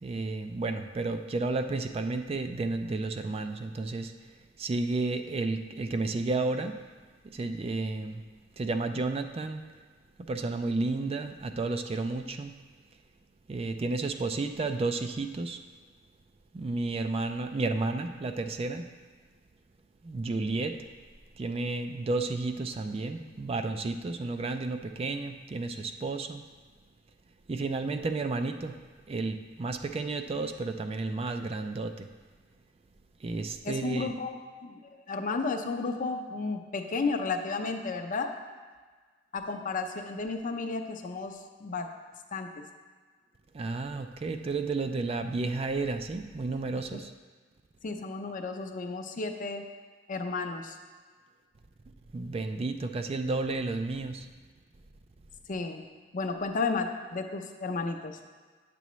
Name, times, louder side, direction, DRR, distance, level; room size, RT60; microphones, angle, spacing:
voice 1, 0.0-4.1 4.6-6.8 7.2-8.2 8.6-9.6 10.2-12.6 13.5-15.6 16.5-18.9 20.0-20.8 21.4-26.4 27.5-28.8 29.1-32.1 33.2-34.1 43.5-47.1 52.1-54.3, right 3 dB, 30° right, 7 dB, 0.3 m, -32 dB
voice 2, 33.6-38.3 39.3-41.9 42.3-42.5 46.9-47.0 47.8-49.6 50.1-50.8 55.5-55.9 56.1-58.2, left 4 dB, 45° left, 5 dB, 0.6 m, -33 dB
9.2 x 6.9 x 3.1 m, 1.5 s
head